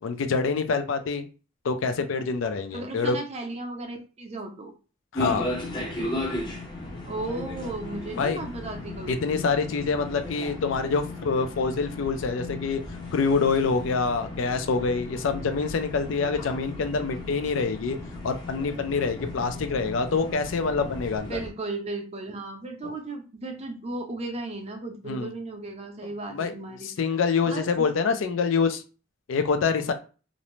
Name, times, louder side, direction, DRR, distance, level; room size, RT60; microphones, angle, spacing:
voice 1, 0.0-1.3 1.6-3.2 5.1-5.5 8.1-8.4 9.1-12.8 13.1-18.0 18.2-21.4 22.8-22.9 25.0-25.3 26.3-26.5 26.8-28.8 29.3-29.9, left 4 dB, 80° left, 9 dB, 0.4 m, -26 dB
voice 2, 2.7-4.7 7.1-9.5 19.3-19.4 21.3-26.9 27.5-27.9, right 2 dB, 30° right, 3 dB, 0.5 m, -35 dB
sound 1, 5.1-21.5, left 1 dB, 20° left, 0.5 m, -36 dB
2.5 x 2.0 x 3.0 m, 0.35 s
head